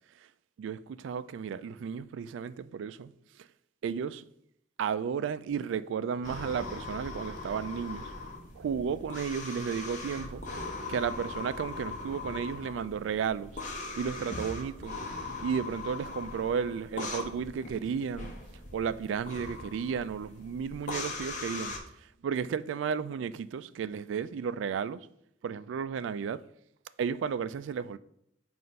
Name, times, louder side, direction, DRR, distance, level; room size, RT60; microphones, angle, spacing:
voice 1, 0.6-3.1 3.4-3.5 3.8-4.2 4.8-8.1 8.5-10.4 10.9-13.6 13.9-15.0 15.4-18.3 18.7-25.1 25.4-26.4 27.0-28.0, right 7 dB, 85° right, 0.3 m, -33 dB
sound 1, 6.2-21.8, left 3 dB, 40° left, 0.9 m, -40 dB
7.6 x 2.5 x 5.3 m
head